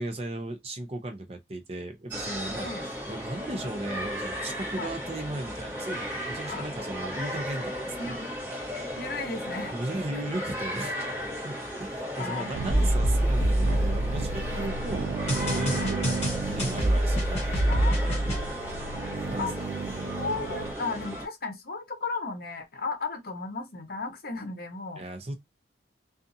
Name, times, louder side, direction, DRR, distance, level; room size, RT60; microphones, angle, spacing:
voice 1, 0.0-2.7 3.1-8.2 9.7-11.1 11.4-18.5 19.3-19.6 19.9-20.2 25.0-25.3, right 1 dB, 35° right, 0.5 m, -36 dB
sound 1, 2.1-21.3, equal, 15° right, 1.2 m, -35 dB
voice 2, 8.0-8.3 9.0-9.8 10.1-10.2 12.2-12.9 13.6-14.0 14.5-14.8 15.8-15.9 17.7-19.0 19.4-19.5 20.1-25.0, left 3 dB, 55° left, 0.7 m, -35 dB
sound 2, 12.5-20.7, right 4 dB, 85° right, 0.3 m, -34 dB
sound 3, 12.7-14.5 15.3-18.4, right 1 dB, 35° left, 1.0 m, -25 dB
2.5 x 2.4 x 2.6 m
head